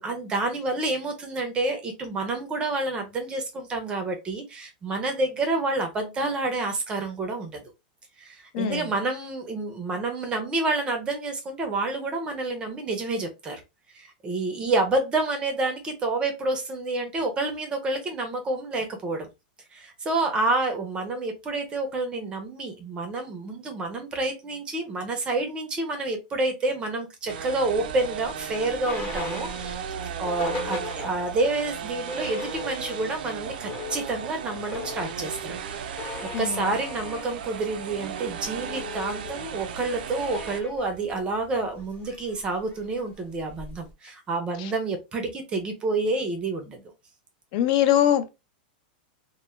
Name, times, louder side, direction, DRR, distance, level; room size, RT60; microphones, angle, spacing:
voice 1, 0.0-7.6 8.2-13.6 13.9-19.3 19.7-29.8 30.2-46.8, right 2 dB, 20° right, 0.5 m, -29 dB
voice 2, 8.5-8.8 36.3-36.7 47.5-48.3, left 11 dB, 50° left, 0.4 m, -22 dB
sound 1, 27.3-40.6, right 7 dB, 75° right, 0.4 m, -36 dB
sound 2, 27.8-31.5 31.8-31.9 32.1-33.1 33.5-43.9, left 3 dB, 30° left, 0.9 m, -39 dB
2.1 x 2.1 x 3.0 m
supercardioid pair, 150°, 5 cm